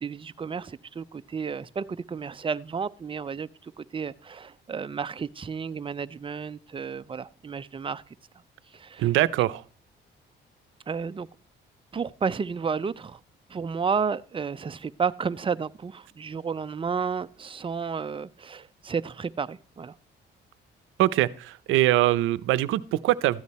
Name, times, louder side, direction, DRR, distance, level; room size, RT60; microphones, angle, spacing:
voice 1, 0.0-8.0 8.7-9.1 10.9-11.3 11.9-13.2 13.5-19.9, right 5 dB, 25° right, 0.6 m, -32 dB
voice 2, 9.0-9.6 21.0-23.4, right 15 dB, 90° right, 0.6 m, -23 dB
13.5 x 9.6 x 4.2 m
cardioid pair, 90°, 20 cm